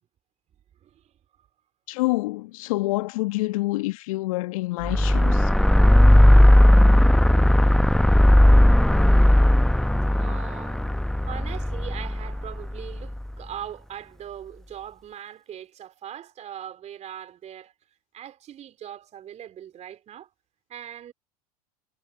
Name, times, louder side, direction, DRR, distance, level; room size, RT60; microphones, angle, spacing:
voice 1, 0.8-1.1 10.1-10.9 11.2-17.7 18.1-20.3 20.7-21.1, right 10 dB, 35° right, 3.7 m, -40 dB
voice 2, 1.9-5.5, left 20 dB, 65° left, 1.5 m, -27 dB
sound 1, 4.8-13.2, left 1 dB, ahead, 0.8 m, -17 dB
figure-of-eight pair, 80°, 19 cm